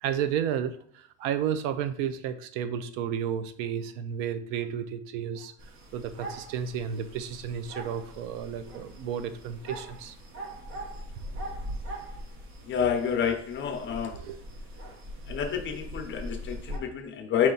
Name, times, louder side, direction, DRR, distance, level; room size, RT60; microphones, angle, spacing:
voice 1, 0.0-5.5 5.9-10.1 14.1-14.4, right 8 dB, 80° right, 11 dB, 0.6 m, -32 dB
sound 1, 5.6-16.8, equal, 40° right, 1.0 m, -41 dB
voice 2, 12.7-14.2 15.3-17.5, left 8 dB, 35° left, 5 dB, 0.7 m, -29 dB
4.2 x 3.1 x 3.9 m, 0.62 s
cardioid pair, 130°, 33 cm